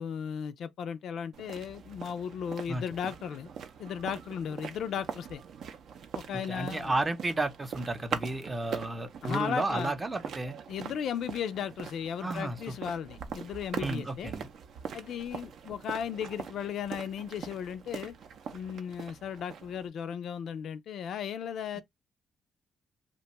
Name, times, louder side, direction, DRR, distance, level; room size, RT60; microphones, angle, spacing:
voice 1, 0.0-3.5 3.8-5.4 6.1-6.9 9.2-9.9 10.7-14.3 14.9-18.1 18.5-21.8, left 8 dB, 70° left, 0.3 m, -36 dB
sound 1, 1.3-19.9, right 7 dB, 70° right, 0.5 m, -42 dB
voice 2, 2.7-3.1 6.5-10.5 12.2-12.7 13.8-14.5 21.8-21.9, right 2 dB, 25° right, 0.6 m, -33 dB
2.5 x 2.2 x 2.9 m
cardioid pair, 90°, 0 cm